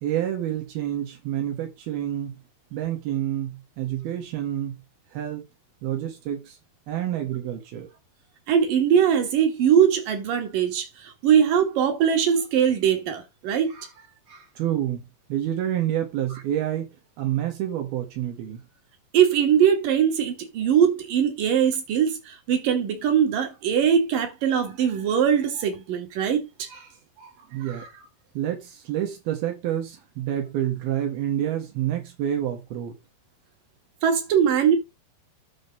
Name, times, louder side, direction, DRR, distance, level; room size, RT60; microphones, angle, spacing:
voice 1, 0.0-2.4 2.7-4.8 5.1-5.5 5.8-6.6 6.9-7.9 14.6-15.0 15.3-16.9 17.2-18.6 27.5-27.9 28.4-33.0, right 11 dB, 85° right, 3.9 m, -28 dB
voice 2, 8.5-13.9 19.1-26.4 26.7-26.9 27.2-27.3 34.0-34.8, right 8 dB, 65° right, 4.2 m, -21 dB
10.0 x 3.8 x 7.4 m
omnidirectional pair, 4.3 m